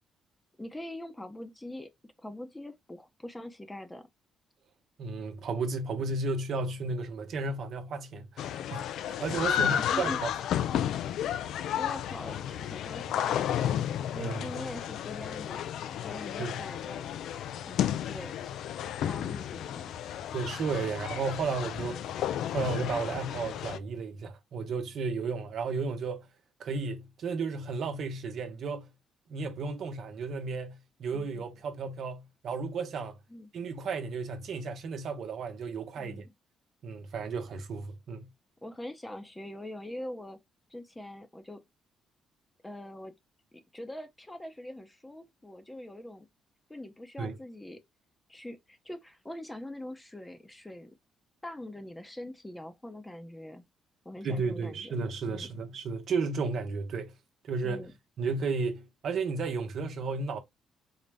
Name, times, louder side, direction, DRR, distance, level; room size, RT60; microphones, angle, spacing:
voice 1, 0.6-1.9 2.2-4.1 9.6-10.2 11.8-13.6 14.1-15.6 16.0-17.1 17.6-18.4 19.1-19.9 31.1-31.3 33.3-33.5 36.0-36.3 38.6-40.4 40.7-41.6 42.6-43.1 43.7-46.3 46.7-47.8 48.3-51.0 51.4-53.6 54.0-54.9 55.3-55.5 57.6-57.9, left 1 dB, 10° left, 0.6 m, -43 dB
voice 2, 5.0-8.9 9.2-10.3 14.2-14.7 16.4-16.6 20.3-22.1 22.5-26.3 26.6-28.9 29.3-33.2 33.5-36.3 36.8-38.3 47.2-47.3 54.2-57.1 57.5-57.8 58.2-60.4, right 4 dB, 65° right, 0.8 m, -33 dB
sound 1, 8.4-23.8, left 10 dB, 80° left, 0.3 m, -32 dB
4.0 x 2.1 x 3.3 m
cardioid pair, 90°, 0 cm